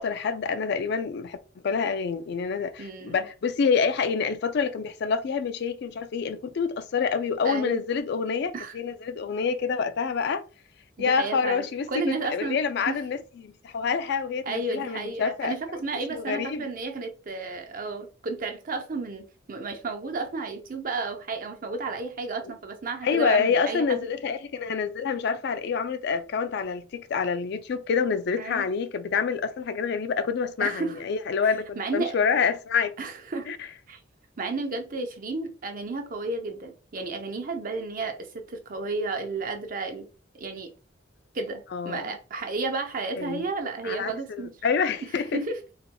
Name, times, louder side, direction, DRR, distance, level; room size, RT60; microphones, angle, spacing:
voice 1, 0.0-1.4 1.6-10.4 11.0-15.5 16.1-16.7 23.0-32.9 33.5-33.6 41.7-42.1 43.2-43.4 43.8-45.3, left 5 dB, 55° left, 0.3 m, -27 dB
voice 2, 2.8-3.3 7.4-7.8 8.5-8.8 11.1-13.0 14.5-24.1 28.4-28.7 30.6-31.0 31.8-32.2 33.0-33.5 33.9-34.0 34.4-40.0 40.4-40.7 41.3-44.5 45.3-45.6, right 3 dB, 45° right, 0.6 m, -32 dB
4.0 x 2.8 x 2.2 m
head